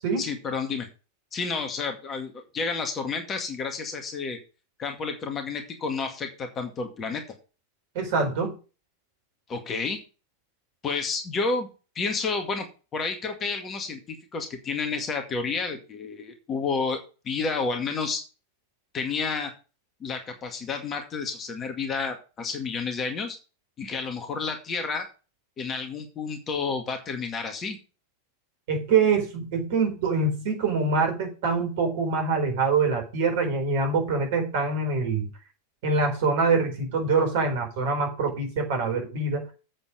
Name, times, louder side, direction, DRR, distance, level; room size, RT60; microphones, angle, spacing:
voice 1, 0.2-0.9 1.3-4.4 4.8-7.2 9.5-10.0 10.8-11.7 12.0-12.7 12.9-18.2 18.9-19.5 20.0-23.4 23.8-25.1 25.6-27.8, left 4 dB, 25° left, 5 dB, 2.0 m, -30 dB
voice 2, 7.9-8.5 28.7-35.3 35.8-39.5, right 4 dB, 50° right, 3 dB, 4.5 m, -25 dB
8.1 x 7.6 x 5.0 m, 0.33 s
figure-of-eight pair, 90°, 0 cm